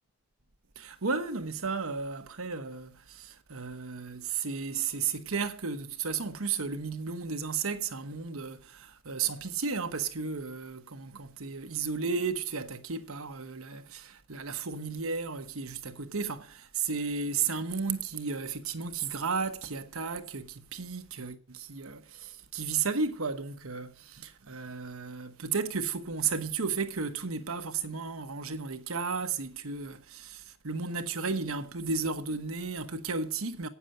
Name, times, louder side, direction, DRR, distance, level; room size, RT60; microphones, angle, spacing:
voice 1, 0.8-33.7, right 5 dB, 85° right, 1.1 m, -34 dB
9.0 x 7.1 x 7.9 m
head